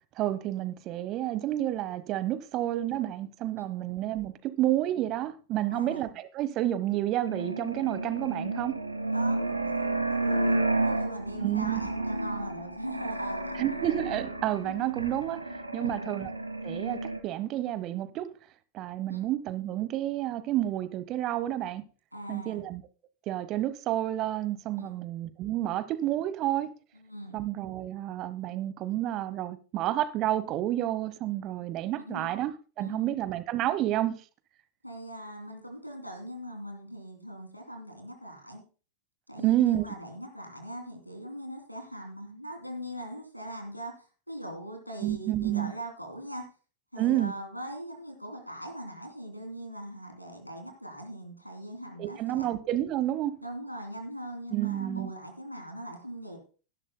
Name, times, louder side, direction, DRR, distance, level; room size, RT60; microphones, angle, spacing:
voice 1, 0.2-8.8 11.4-11.8 13.6-15.4 15.7-16.3 16.6-18.3 18.7-21.8 22.3-22.8 23.3-26.7 27.3-32.5 32.8-34.1 39.4-39.8 45.0-45.7 47.0-47.3 52.0-53.4 54.5-55.1, right 13 dB, 35° right, 1.0 m, -30 dB
voice 2, 3.6-3.9 5.7-6.1 9.1-13.6 15.7-16.1 18.9-19.2 22.1-22.6 24.8-25.0 26.9-27.4 32.0-32.3 32.8-33.2 34.8-38.6 39.3-46.5 46.9-52.5 53.4-56.4, equal, 90° left, 3.0 m, -41 dB
sound 1, 7.2-17.2, right 2 dB, 85° right, 1.3 m, -31 dB
17.5 x 11.0 x 2.2 m
figure-of-eight pair, 90°, 0 cm